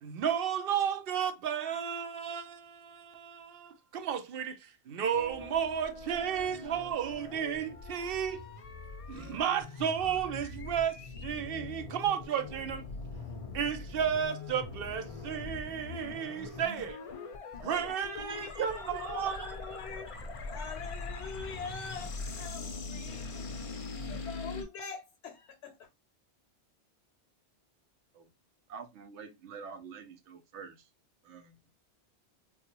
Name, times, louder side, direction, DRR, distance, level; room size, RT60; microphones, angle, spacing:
voice 1, 0.0-8.4 9.1-12.8 13.5-17.0 17.6-19.5, right 8 dB, 65° right, 0.7 m, -33 dB
sound 1, 5.1-24.6, left 3 dB, 45° left, 0.4 m, -42 dB
voice 2, 18.0-20.1 20.5-23.3 24.1-25.7, left 5 dB, 80° left, 0.9 m, -43 dB
voice 3, 28.7-30.8 31.2-31.6, right 5 dB, 85° right, 0.9 m, -47 dB
3.6 x 2.3 x 2.8 m
omnidirectional pair, 1.1 m